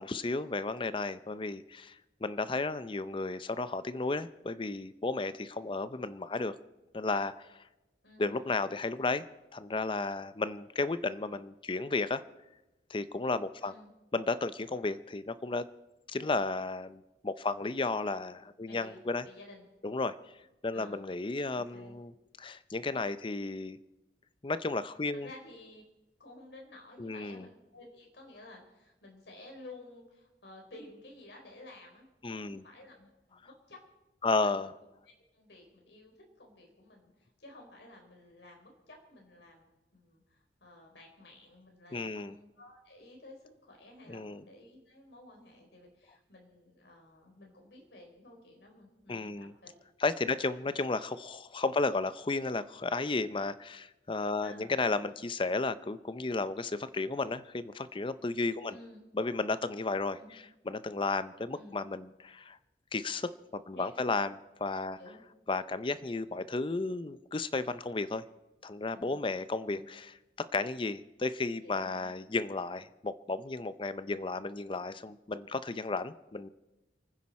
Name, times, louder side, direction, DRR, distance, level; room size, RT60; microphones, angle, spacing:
voice 1, 0.0-6.5 6.9-7.5 8.2-9.2 9.5-12.2 12.9-13.7 14.1-15.7 16.1-19.3 19.8-20.1 20.6-22.1 22.4-23.8 24.4-25.3 27.0-27.5 32.2-32.6 34.2-34.7 41.9-42.3 44.1-44.4 49.1-49.5 50.0-58.7 59.1-62.6 62.9-65.0 65.5-68.2 68.6-70.1 70.4-76.5, left 3 dB, 30° left, 14 dB, 0.6 m, -33 dB
voice 2, 8.0-8.4 13.6-13.9 18.6-19.7 20.7-21.1 21.5-22.0 25.1-25.8 26.2-33.8 34.3-34.5 35.3-39.6 39.9-49.8 54.4-54.7 58.7-59.0 60.1-60.4 61.5-61.8 63.7-64.1 65.0-65.2 68.9-69.2 69.7-69.9 71.6-72.1, left 2 dB, 80° left, 1 dB, 4.2 m, -53 dB
29.0 x 9.9 x 4.3 m, 1.0 s
head